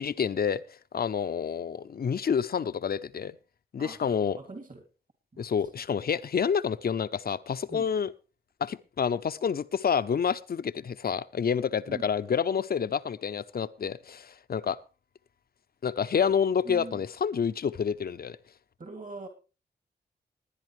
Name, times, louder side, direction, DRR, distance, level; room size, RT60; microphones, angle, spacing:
voice 1, 0.0-3.4 3.7-4.4 5.4-8.1 8.6-14.8 15.8-18.4, left 7 dB, 60° left, 13 dB, 0.7 m, -28 dB
voice 2, 3.8-4.9 5.3-5.5 7.7-7.8 11.9-12.1 16.6-17.0 18.8-19.3, right 3 dB, 50° right, 4 dB, 2.9 m, -43 dB
19.0 x 10.5 x 3.2 m, 0.32 s
cardioid pair, 50°, 18 cm